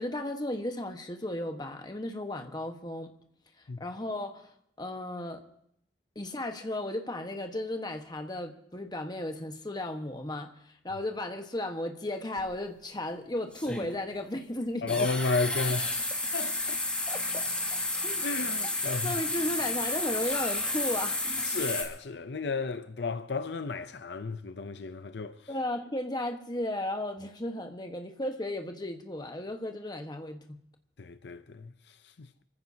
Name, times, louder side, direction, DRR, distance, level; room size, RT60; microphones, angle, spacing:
voice 1, 0.0-3.1 3.8-4.5 4.8-5.4 6.1-10.5 10.8-15.1 17.1-17.5 18.0-18.3 19.0-21.2 25.5-30.6, left 1 dB, 25° left, 1.3 m, -35 dB
sound 1, 12.4-12.5 13.5-13.9 14.9-21.8, left 2 dB, 5° left, 2.8 m, -31 dB
voice 2, 14.8-16.8 18.2-19.2 21.4-25.4 31.0-32.3, left 3 dB, 65° left, 0.6 m, -33 dB
28.0 x 15.0 x 2.8 m
head